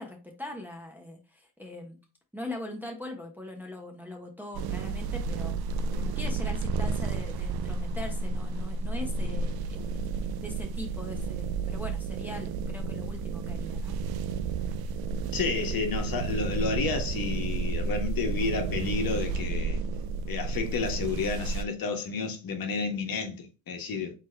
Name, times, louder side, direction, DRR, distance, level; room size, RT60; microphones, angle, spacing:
voice 1, 0.0-2.0 2.3-5.5 5.9-10.0 10.4-13.9, left 1 dB, 5° right, 1.0 m, -41 dB
sound 1, 4.5-21.6, right 4 dB, 60° right, 0.6 m, -31 dB
voice 2, 15.2-19.8 20.3-24.1, left 4 dB, 55° left, 1.3 m, -31 dB
4.2 x 3.2 x 3.3 m
supercardioid pair, 80°, 42 cm